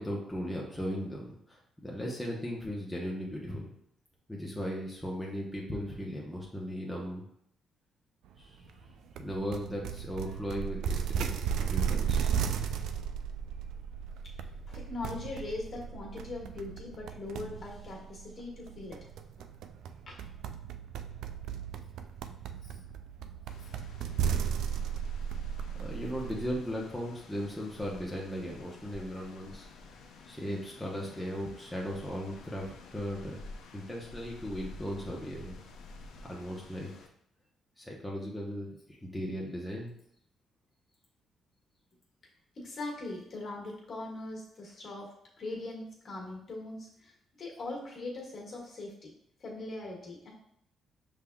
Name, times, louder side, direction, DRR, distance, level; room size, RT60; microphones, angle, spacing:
voice 1, 0.0-3.7 4.3-7.2 8.4-8.5 9.2-11.3 11.6-12.4 25.8-29.7 30.3-33.4 33.7-35.6 36.2-36.9 37.8-39.9, equal, 5° left, -3 dB, 0.8 m, -37 dB
sound 1, 9.2-26.6, right 7 dB, 80° right, 0.3 m, -35 dB
voice 2, 14.7-19.0 20.1-20.2 22.6-22.8 23.6-23.7 42.5-45.1 45.4-49.1 49.4-50.3, left 2 dB, 45° left, -2 dB, 1.6 m, -41 dB
sound 2, 23.5-37.1, left 2 dB, 80° left, 0.5 m, -50 dB
5.6 x 3.6 x 2.3 m, 0.74 s
cardioid pair, 90°, 0 cm